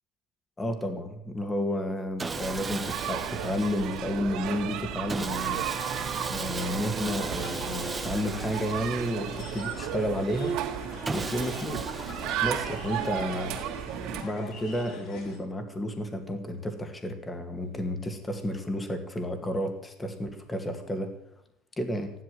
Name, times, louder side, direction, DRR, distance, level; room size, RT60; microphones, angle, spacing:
voice 1, 0.6-5.6 6.3-10.6 11.1-11.9 12.4-13.5 14.2-21.1 21.8-22.1, left 1 dB, 10° left, 6 dB, 2.1 m, -31 dB
Sawing, 2.2-4.2 5.1-9.6 11.0-12.9, right 3 dB, 10° right, 0.8 m, -37 dB
sound 1, 2.3-14.2, right 9 dB, 55° right, 2.8 m, -34 dB
sound 2, 7.4-15.4, left 3 dB, 50° left, 4.5 m, -44 dB
15.5 x 11.5 x 7.7 m, 0.78 s
cardioid pair, 165°, 0 cm